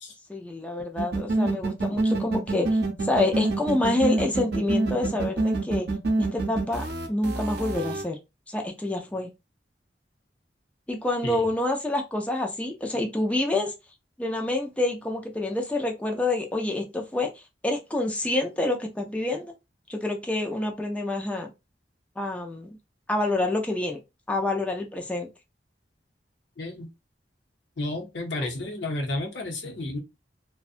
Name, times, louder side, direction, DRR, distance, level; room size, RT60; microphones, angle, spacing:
voice 1, 0.3-5.9 6.2-8.2 8.5-9.3 10.9-13.7 14.2-17.3 17.6-19.5 19.9-21.5 22.2-22.8 23.1-24.0 24.3-25.3 28.4-28.5, left 2 dB, 10° left, 0.4 m, -27 dB
sound 1, 1.0-8.0, right 2 dB, 65° right, 0.7 m, -26 dB
voice 2, 26.6-26.9 27.8-30.0, left 2 dB, 80° left, 0.8 m, -32 dB
2.6 x 2.2 x 2.4 m
head